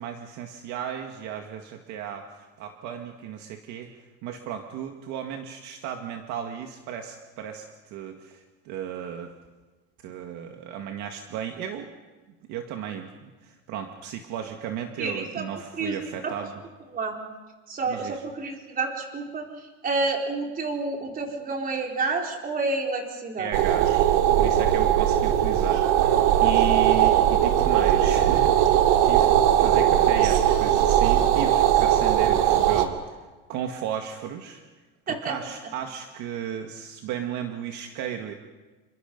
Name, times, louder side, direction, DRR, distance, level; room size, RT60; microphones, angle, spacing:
voice 1, 0.0-3.9 4.2-9.3 10.0-11.9 12.5-16.6 17.9-18.2 23.4-24.1 24.4-26.1 26.4-33.2 33.5-34.6 35.1-38.3, right 9 dB, 55° right, 4 dB, 2.1 m, -35 dB
voice 2, 15.0-15.4 15.8-15.9 16.2-16.3 16.9-17.1 17.7-19.4 19.8-23.5 35.1-35.3, right 3 dB, 25° right, 1 dB, 4.1 m, -29 dB
sound 1, 23.5-32.9, right 11 dB, 75° right, 2.5 m, -20 dB
29.0 x 24.0 x 5.4 m, 1.3 s
cardioid pair, 150°, 35 cm